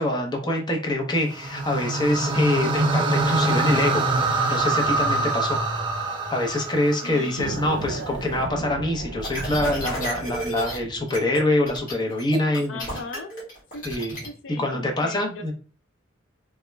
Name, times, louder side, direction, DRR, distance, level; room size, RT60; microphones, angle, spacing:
voice 1, 0.0-4.0 4.5-5.6 6.3-12.8 13.8-14.2 14.6-15.5, left 1 dB, 20° left, 2 dB, 0.6 m, -25 dB
sound 1, 1.3-7.6, right 2 dB, 25° right, 0.4 m, -24 dB
voice 2, 7.0-7.9 12.7-13.3 13.7-13.8 14.2-15.5, left 3 dB, 75° left, 5 dB, 0.5 m, -38 dB
sound 2, 7.4-11.1, right 3 dB, 85° right, 0.4 m, -35 dB
sound 3, 9.2-10.8 11.1-11.4 11.7-14.3, right 1 dB, 45° left, 1.5 m, -32 dB
3.4 x 2.0 x 3.2 m, 0.36 s
head